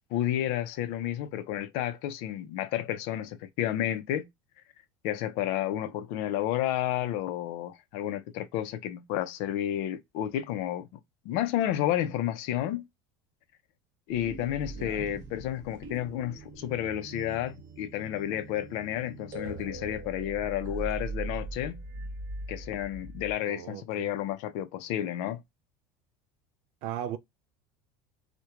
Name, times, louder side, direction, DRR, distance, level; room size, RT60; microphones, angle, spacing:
voice 1, 0.1-4.3 5.0-10.9 11.2-12.8 14.1-21.8 22.5-25.4, left 12 dB, 60° left, 0.4 m, -31 dB
sound 1, 14.1-23.4, right 3 dB, 25° right, 0.7 m, -41 dB
voice 2, 14.7-15.1 23.4-24.1 26.8-27.2, right 10 dB, 55° right, 0.4 m, -37 dB
2.9 x 2.1 x 2.3 m
cardioid pair, 160°, 12 cm